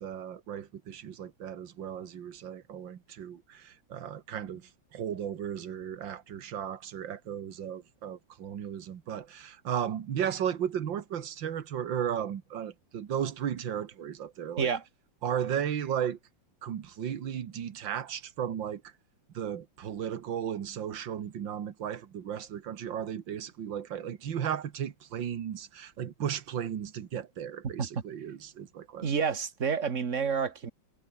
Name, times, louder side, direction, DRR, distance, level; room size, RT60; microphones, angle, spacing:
voice 1, 0.0-14.7 15.2-16.2 16.6-18.8 19.3-29.1, right 9 dB, 75° right, 2.2 m, -35 dB
voice 2, 29.0-30.7, right 6 dB, 40° right, 2.0 m, -29 dB
omnidirectional pair, 2.1 m